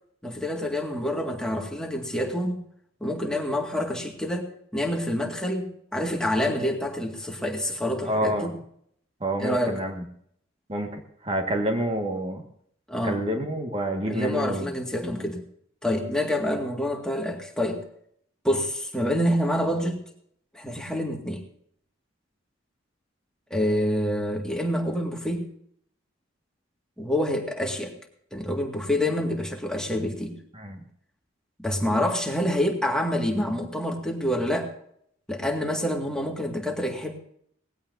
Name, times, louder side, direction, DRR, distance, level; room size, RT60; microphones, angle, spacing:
voice 1, 0.2-2.6 3.0-8.5 9.4-9.8 12.9-13.2 14.1-15.4 15.8-17.8 18.4-20.0 20.5-21.4 23.5-25.5 27.0-27.9 28.3-30.4 31.6-34.7 35.3-37.2, left 1 dB, 5° left, 1 dB, 2.0 m, -27 dB
voice 2, 8.0-8.5 9.2-10.0 10.7-12.4 13.0-14.7 15.0-15.3 30.5-30.8, right 1 dB, 30° right, 3 dB, 1.8 m, -28 dB
19.5 x 16.0 x 2.7 m, 0.66 s
head